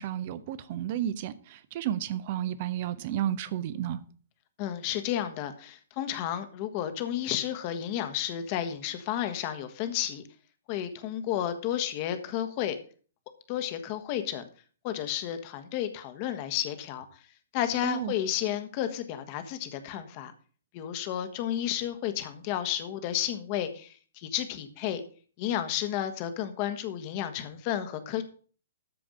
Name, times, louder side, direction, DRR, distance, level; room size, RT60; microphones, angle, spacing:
voice 1, 0.0-4.0 17.8-18.1, right 11 dB, 40° right, 0.9 m, -32 dB
voice 2, 4.6-10.2 10.7-12.8 13.5-14.4 14.8-17.0 17.5-20.3 20.7-25.0 25.4-28.2, left 11 dB, 35° left, 1.5 m, -32 dB
13.0 x 5.1 x 6.4 m
figure-of-eight pair, 120°, 0 cm